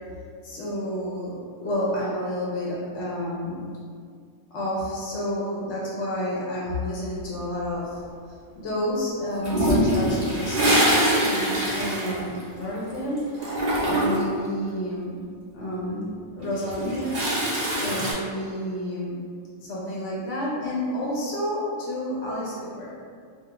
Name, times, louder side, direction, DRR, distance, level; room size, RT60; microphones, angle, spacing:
voice 1, 0.4-3.6 4.5-8.0 8.6-13.6 13.8-15.2 15.5-16.1 16.4-17.2 17.8-19.2 19.6-23.0, equal, 65° left, -6 dB, 0.8 m, -30 dB
Toilet flush, 9.4-12.9 13.2-14.4 16.4-18.1, equal, 60° right, 0.4 m, -23 dB
2.3 x 2.3 x 2.9 m, 2.1 s
omnidirectional pair, 1.5 m